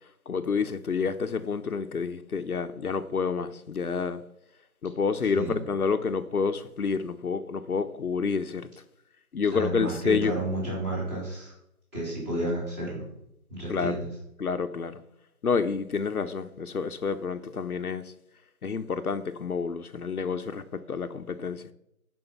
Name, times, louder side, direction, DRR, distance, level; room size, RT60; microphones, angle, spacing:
voice 1, 0.3-4.2 4.8-8.7 9.3-10.4 13.7-14.0 14.4-15.0 15.4-18.1 18.6-21.6, left 5 dB, 85° left, 1.0 m, -29 dB
voice 2, 9.5-11.5 11.9-13.0 13.5-14.1, right 1 dB, 10° right, 3.1 m, -31 dB
11.0 x 5.4 x 5.8 m
figure-of-eight pair, 170°, 43 cm